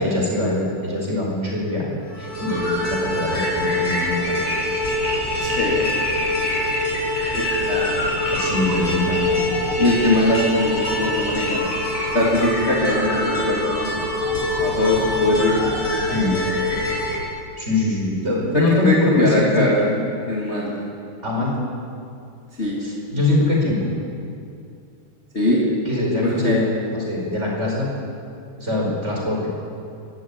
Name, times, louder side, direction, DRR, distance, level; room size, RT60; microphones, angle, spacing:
voice 1, 0.0-4.4 8.3-9.4 16.1-16.3 17.6-19.9 21.2-21.5 22.8-23.9 25.8-27.9 28.6-29.5, left 2 dB, 15° right, -2 dB, 5.0 m, -23 dB
sound 1, 2.1-17.1, left 1 dB, 45° left, 8.0 m, -24 dB
voice 2, 5.4-6.0 7.3-8.0 9.8-11.6 12.1-13.9 14.6-15.7 18.5-19.8 20.3-20.7 22.6-22.8 25.3-25.6 26.2-26.6, left 1 dB, 20° left, -4 dB, 2.5 m, -21 dB
22.0 x 14.5 x 9.0 m, 2.4 s
omnidirectional pair, 4.8 m